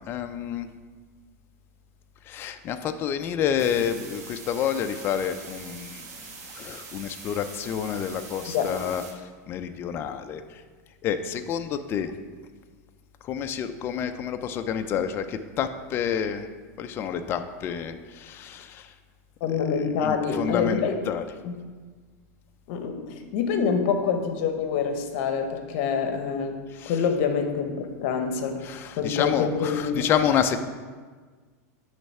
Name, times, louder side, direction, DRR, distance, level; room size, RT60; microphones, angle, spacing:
voice 1, 0.1-0.7 2.3-6.1 6.5-9.0 9.5-10.6 11.0-12.1 13.2-16.5 16.8-18.9 20.0-21.2 26.8-26.9 28.6-30.6, left 8 dB, 25° left, 8 dB, 0.3 m, -29 dB
sound 1, 3.6-9.1, right 4 dB, 85° right, 1.1 m, -43 dB
voice 2, 19.4-21.0 21.4-21.5 22.7-28.6 29.0-30.1, left 6 dB, 50° left, 6 dB, 0.8 m, -26 dB
8.9 x 3.2 x 4.2 m, 1.4 s
supercardioid pair, 150°, 9 cm